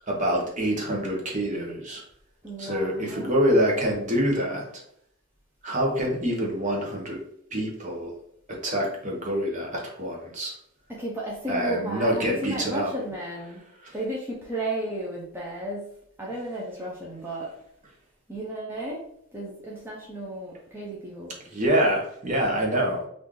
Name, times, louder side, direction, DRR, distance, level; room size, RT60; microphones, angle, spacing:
voice 1, 0.1-2.0 2.6-4.6 5.6-7.2 7.5-8.1 8.5-10.5 11.5-12.9 21.5-23.1, equal, 35° right, -1 dB, 0.9 m, -26 dB
voice 2, 2.4-3.3 10.9-13.6 13.9-15.9 16.2-17.5 18.3-19.0 19.3-21.3, right 1 dB, 10° right, -5 dB, 0.6 m, -33 dB
3.1 x 2.6 x 3.6 m, 0.71 s
head